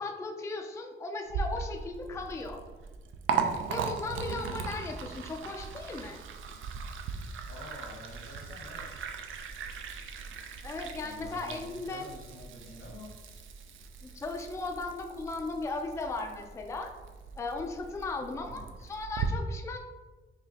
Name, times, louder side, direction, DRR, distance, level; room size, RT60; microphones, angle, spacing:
voice 1, 0.0-2.6 3.7-6.2 10.6-12.0 14.0-16.9 17.4-19.8, left 3 dB, 15° left, 3 dB, 0.3 m, -37 dB
Liquid, 1.3-19.3, right 6 dB, 75° right, 0.4 m, -38 dB
voice 2, 7.4-9.0 10.9-13.2 18.2-18.8, left 1 dB, 80° left, -1 dB, 1.1 m, -48 dB
4.9 x 2.7 x 2.8 m, 1.3 s
cardioid pair, 115°, 20 cm